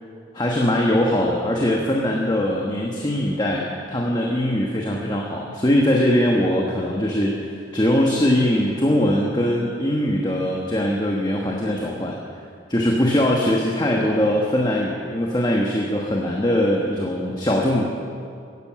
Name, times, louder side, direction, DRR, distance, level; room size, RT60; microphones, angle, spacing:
voice 1, 0.3-12.2 12.7-17.8, left 1 dB, 20° left, -1 dB, 1.2 m, -21 dB
17.0 x 10.5 x 7.5 m, 2.4 s
head